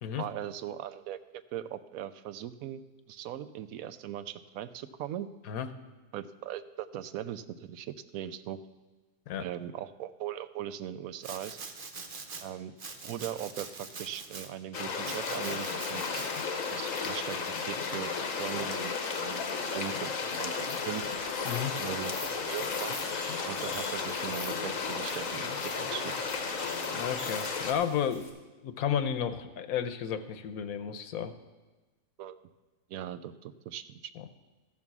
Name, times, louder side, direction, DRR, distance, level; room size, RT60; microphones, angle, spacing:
voice 1, 0.2-2.8 3.1-5.3 6.1-8.6 9.4-11.6 12.4-12.7 13.0-16.3 16.7-18.1 18.4-18.9 19.2-20.1 20.4-21.1 21.7-23.0 23.5-25.5 25.8-26.1 32.2-32.4 32.9-34.0, right 11 dB, 80° right, 13 dB, 1.0 m, -39 dB
Domestic sounds home sounds, 11.2-12.4 12.8-14.5 15.1-16.5, right 4 dB, 45° right, 1.0 m, -43 dB
sound 1, 14.7-27.7, left 5 dB, 70° left, 1.5 m, -34 dB
sound 2, 20.7-28.3, left 2 dB, 25° left, 2.1 m, -46 dB
voice 2, 26.9-31.3 34.2-34.3, left 8 dB, 85° left, 10 dB, 1.2 m, -32 dB
14.0 x 7.3 x 6.1 m, 1.2 s
omnidirectional pair, 1.4 m